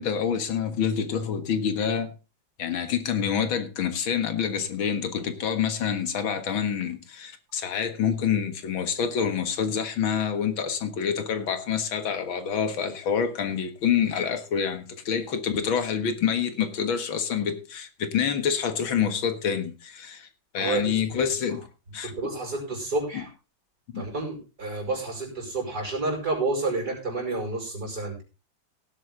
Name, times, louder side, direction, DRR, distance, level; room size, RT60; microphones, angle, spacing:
voice 1, 0.0-2.1 2.6-20.3 20.5-21.6 21.9-22.3 23.9-24.0, left 7 dB, 90° left, 2.3 m, -27 dB
voice 2, 20.6-21.0 22.0-23.3 23.9-28.2, right 3 dB, 50° right, 6.1 m, -30 dB
17.5 x 8.1 x 3.8 m
omnidirectional pair, 2.1 m